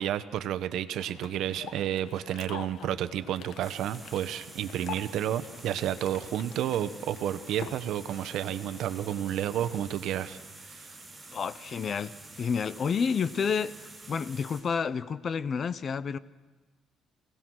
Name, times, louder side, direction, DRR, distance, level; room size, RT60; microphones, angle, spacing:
voice 1, 0.0-10.4 10.7-10.9, right 11 dB, 70° right, 1.0 m, -31 dB
sound 1, 0.9-9.9, left 7 dB, 60° left, 1.3 m, -46 dB
sound 2, 3.6-14.6, right 2 dB, 20° right, 7.5 m, -48 dB
voice 2, 11.3-16.2, left 6 dB, 40° left, 0.7 m, -30 dB
28.0 x 18.0 x 6.3 m
cardioid pair, 125°, 0 cm